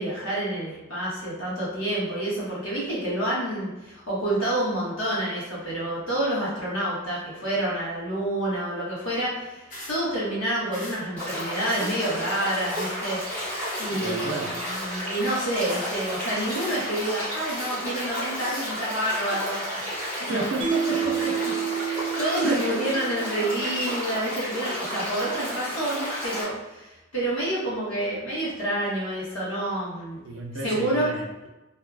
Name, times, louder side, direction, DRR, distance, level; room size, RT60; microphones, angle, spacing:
voice 1, 0.0-13.2 13.8-19.9 20.2-20.5 21.0-21.3 21.7-30.2 30.6-31.1, right 1 dB, 85° left, -7 dB, 1.2 m, -28 dB
sound 1, 9.7-10.0 10.7-11.0 11.7-12.0 12.7-12.9 13.6-13.9 14.6-14.9 15.5-15.8 16.5-16.8 17.5-17.7 18.4-18.7, left 1 dB, 40° left, 0.7 m, -39 dB
sound 2, 11.2-26.4, equal, 5° left, 1.1 m, -32 dB
voice 2, 13.9-14.5 20.3-20.9 22.4-22.6 30.2-31.5, right 3 dB, 90° right, 2 dB, 0.5 m, -31 dB
Mallet percussion, 20.6-23.9, right 9 dB, 25° right, 0.4 m, -30 dB
2.7 x 2.3 x 2.4 m, 1.0 s
head